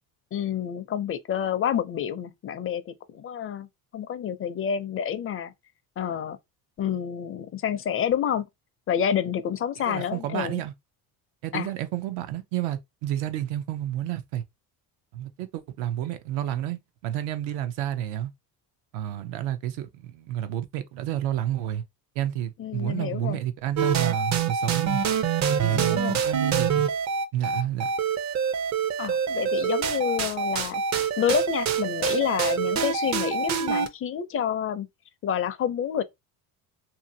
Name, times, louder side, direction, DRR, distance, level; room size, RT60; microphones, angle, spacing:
voice 1, 0.3-3.7 3.9-5.5 6.0-6.4 6.8-8.5 8.9-10.6 11.5-11.7 22.6-23.4 25.7-26.2 29.0-30.8 31.2-34.9 35.2-36.0, left 9 dB, 30° left, 0.4 m, -28 dB
voice 2, 9.9-10.7 11.4-14.4 15.1-18.3 18.9-21.8 22.2-25.0 25.5-26.8 27.3-27.9, right 12 dB, 80° right, 0.7 m, -30 dB
sound 1, 23.8-33.9, right 7 dB, 40° right, 0.5 m, -26 dB
2.8 x 2.4 x 2.7 m
supercardioid pair, 95°, 46 cm